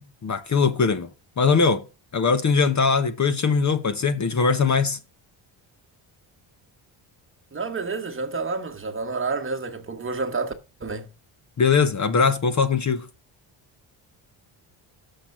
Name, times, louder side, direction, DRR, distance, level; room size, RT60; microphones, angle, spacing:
voice 1, 0.2-1.1 1.4-1.8 2.1-5.0 11.6-13.1, left 5 dB, 35° left, 1.0 m, -21 dB
voice 2, 7.5-10.5 10.8-11.1, right 4 dB, 25° right, 1.4 m, -29 dB
6.7 x 6.0 x 5.9 m
cardioid pair, 105°, 48 cm